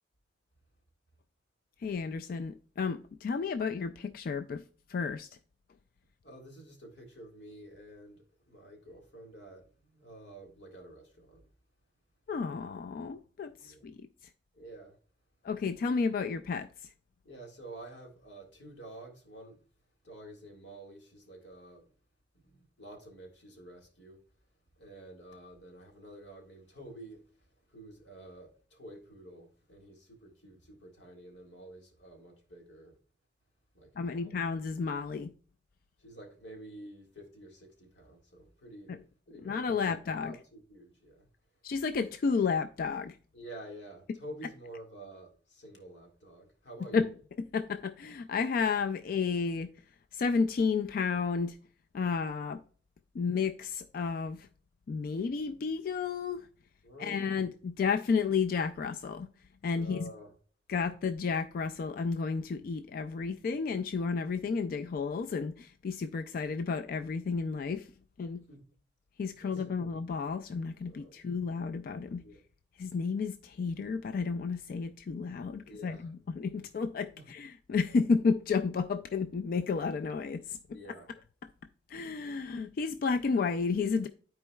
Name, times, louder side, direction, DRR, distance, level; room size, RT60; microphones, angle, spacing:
voice 1, 1.8-4.6 4.9-5.3 12.3-14.0 15.4-16.9 34.0-35.3 38.9-39.0 39.4-40.4 41.6-43.2 46.9-47.1 47.5-49.7 50.1-51.6 51.9-52.6 53.1-54.5 54.9-56.5 57.0-59.3 59.6-60.1 60.7-67.9 68.2-68.4 69.2-72.2 72.8-80.6 81.9-84.1, left 5 dB, 55° left, 0.3 m, -32 dB
voice 2, 6.2-11.5 13.6-13.9 14.5-15.0 17.2-19.6 20.0-21.9 22.4-24.2 24.8-33.0 33.7-34.3 36.0-39.0 39.3-41.3 43.3-47.0 56.8-57.3 59.7-60.3 68.5-68.6 69.4-69.9 70.9-71.2 72.2-72.4 75.7-76.1 77.2-77.3 80.7-81.1, right 1 dB, 90° left, 1.9 m, -50 dB
13.0 x 4.5 x 2.3 m
head